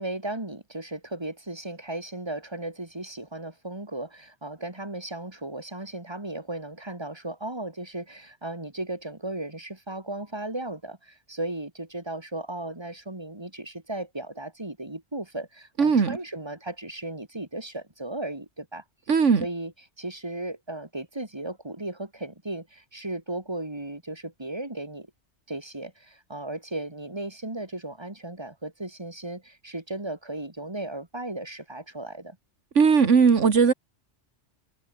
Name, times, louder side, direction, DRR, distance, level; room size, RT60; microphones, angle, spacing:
voice 1, 0.0-18.8 19.4-19.7 20.0-25.1 25.5-32.4, right 1 dB, 20° right, 3.4 m, -36 dB
voice 2, 15.8-16.2 19.1-19.5 32.8-33.7, right 5 dB, 90° right, 2.0 m, -18 dB
omnidirectional pair, 1.2 m